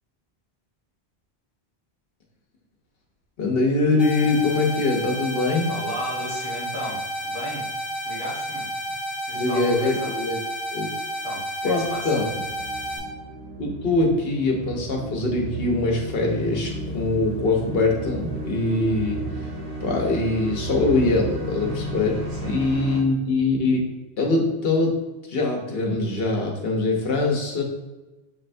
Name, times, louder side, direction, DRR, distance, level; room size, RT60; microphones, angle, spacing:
voice 1, 3.4-5.7 9.3-10.4 10.7-10.9 11.6-12.3 13.6-19.2 19.8-23.9 24.2-25.0 25.3-27.6, left 3 dB, 70° left, 0 dB, 1.0 m, -23 dB
sound 1, 4.0-13.0, equal, ahead, 1.2 m, -31 dB
voice 2, 5.7-7.7 8.0-8.7 9.2-10.1 11.2-12.2 22.3-22.6, equal, 40° right, -6 dB, 1.3 m, -35 dB
sound 2, 11.9-23.0, right 2 dB, 85° right, 1.3 m, -33 dB
6.0 x 3.2 x 2.6 m, 1.1 s
omnidirectional pair, 1.0 m